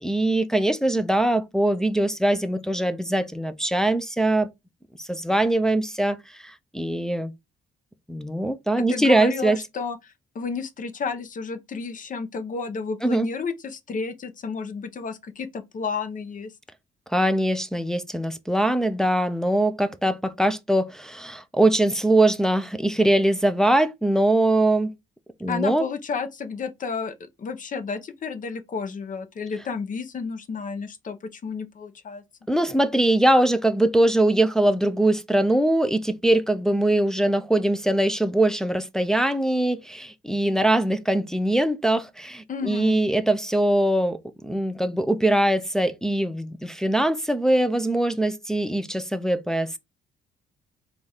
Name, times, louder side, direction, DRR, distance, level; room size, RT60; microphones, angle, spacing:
voice 1, 0.0-4.5 5.0-7.3 8.1-9.6 13.0-13.3 17.1-24.9 25.4-25.8 32.5-44.2 44.4-49.8, right 1 dB, 5° left, 0.4 m, -22 dB
voice 2, 8.8-16.5 25.5-32.2 42.5-43.0, left 5 dB, 40° left, 0.6 m, -31 dB
3.9 x 2.4 x 3.3 m
cardioid pair, 90°, 20 cm